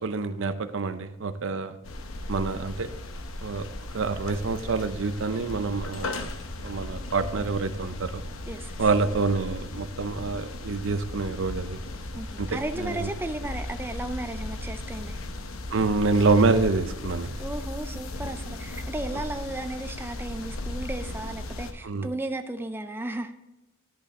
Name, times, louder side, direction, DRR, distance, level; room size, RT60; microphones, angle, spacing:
voice 1, 0.0-1.8 2.3-2.9 3.4-3.7 3.9-6.3 6.6-8.2 8.8-11.8 12.4-13.1 15.7-17.4 21.8-22.1, right 3 dB, 65° right, 11 dB, 0.6 m, -26 dB
sound 1, 1.8-21.7, left 2 dB, 80° left, 0.9 m, -36 dB
voice 2, 8.5-8.9 12.1-15.2 17.4-23.3, right 1 dB, 10° right, 8 dB, 0.4 m, -35 dB
11.0 x 5.5 x 4.2 m, 0.98 s
head